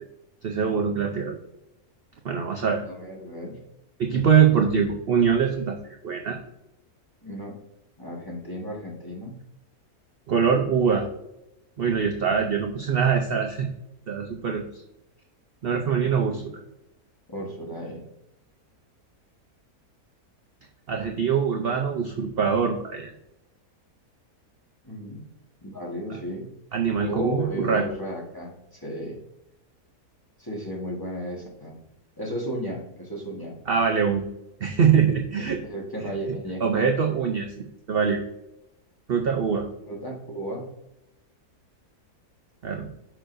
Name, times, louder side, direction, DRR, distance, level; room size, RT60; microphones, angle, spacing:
voice 1, 0.4-1.4 2.2-2.8 4.0-6.4 10.3-11.1 11.8-13.7 14.1-14.8 15.6-16.4 20.9-23.1 26.1-26.2 26.7-27.9 33.7-34.2 34.6-35.6 36.6-38.2 39.1-39.7 42.6-42.9, right 6 dB, 60° right, 3 dB, 0.6 m, -23 dB
voice 2, 2.9-3.6 7.2-7.5 8.0-9.4 16.0-16.5 17.3-18.0 24.8-25.2 25.6-26.5 27.1-29.2 30.4-31.7 32.2-33.6 35.6-36.6 39.8-40.7, equal, 15° left, -3 dB, 1.3 m, -34 dB
6.3 x 6.0 x 2.6 m, 0.85 s
omnidirectional pair, 1.6 m